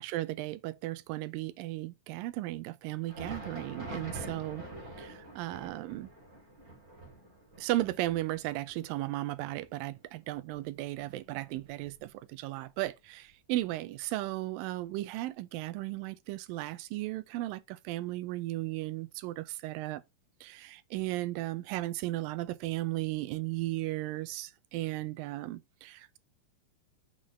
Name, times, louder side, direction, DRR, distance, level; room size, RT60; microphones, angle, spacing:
voice 1, 0.0-4.7 5.0-6.1 7.6-20.0 20.4-26.2, right 17 dB, 85° right, 2.3 m, -35 dB
Thunder, 3.0-12.4 12.7-12.9 13.6-13.7 14.7-14.8, right 1 dB, 25° right, 3.1 m, -47 dB
6.6 x 5.5 x 3.1 m
omnidirectional pair, 4.0 m